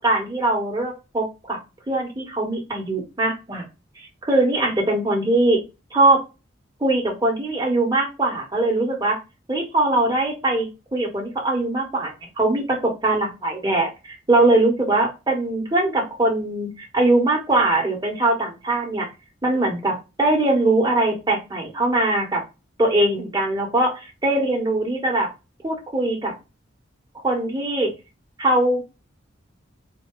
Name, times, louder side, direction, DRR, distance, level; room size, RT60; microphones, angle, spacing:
voice 1, 0.0-1.6 1.9-3.6 4.2-5.6 5.9-6.2 6.8-9.2 9.5-19.1 19.4-22.4 22.8-25.3 25.6-26.3 27.2-27.9 28.4-28.8, right 2 dB, 20° right, -1 dB, 1.3 m, -21 dB
4.3 x 2.8 x 3.2 m, 0.27 s
head